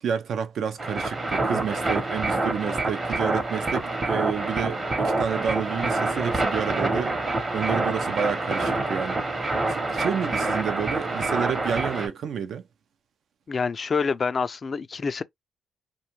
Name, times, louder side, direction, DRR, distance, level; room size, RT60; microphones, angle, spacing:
voice 1, 0.0-7.1 7.5-9.2 9.7-12.6, right 7 dB, 65° right, 0.4 m, -30 dB
sound 1, 0.8-12.1, right 2 dB, 30° right, 0.8 m, -26 dB
voice 2, 13.5-15.2, left 5 dB, 40° left, 0.3 m, -27 dB
2.5 x 2.2 x 2.9 m
cardioid pair, 90°, 0 cm